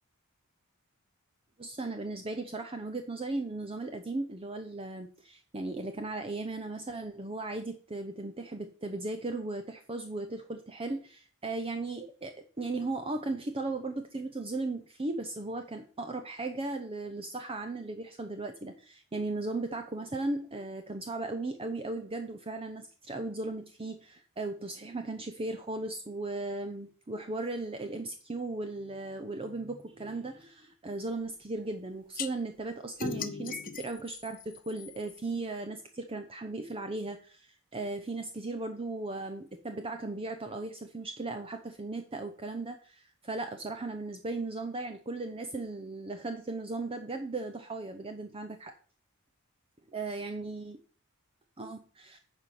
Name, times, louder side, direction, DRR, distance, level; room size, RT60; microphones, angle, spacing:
voice 1, 1.6-48.7 49.9-50.8 51.6-52.2, right 2 dB, 25° right, 7 dB, 0.7 m, -37 dB
sound 1, 32.2-32.3 33.0-35.2, left 6 dB, 40° left, 0.7 m, -38 dB
9.3 x 4.9 x 5.9 m, 0.41 s
head